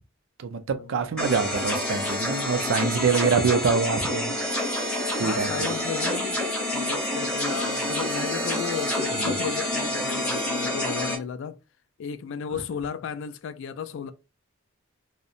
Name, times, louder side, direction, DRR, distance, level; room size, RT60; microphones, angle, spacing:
voice 1, 0.4-4.4 5.2-5.7 9.1-9.4 12.5-12.6, right 5 dB, 65° right, 0.4 m, -25 dB
sound 1, 1.2-11.2, left 1 dB, 5° left, 0.8 m, -28 dB
voice 2, 5.2-6.4 6.7-11.6 12.0-14.1, left 7 dB, 65° left, 0.3 m, -34 dB
2.7 x 2.0 x 2.4 m
head